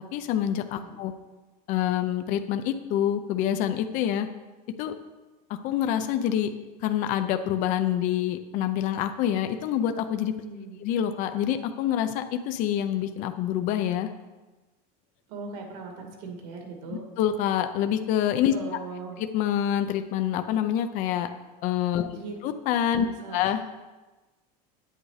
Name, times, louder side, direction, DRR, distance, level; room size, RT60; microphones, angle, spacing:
voice 1, 0.1-1.1 1.7-4.3 4.8-4.9 5.5-6.5 6.8-10.3 10.8-14.1 17.2-18.5 19.2-21.3 21.6-22.1 22.4-23.1 23.3-23.6, left 10 dB, 40° left, 8 dB, 0.6 m, -26 dB
voice 2, 10.4-10.8 15.3-17.0 18.5-19.2 22.0-22.4 23.0-23.4, right 4 dB, 90° right, 2 dB, 2.4 m, -39 dB
9.2 x 8.8 x 5.0 m, 1.2 s
cardioid pair, 170°, 20 cm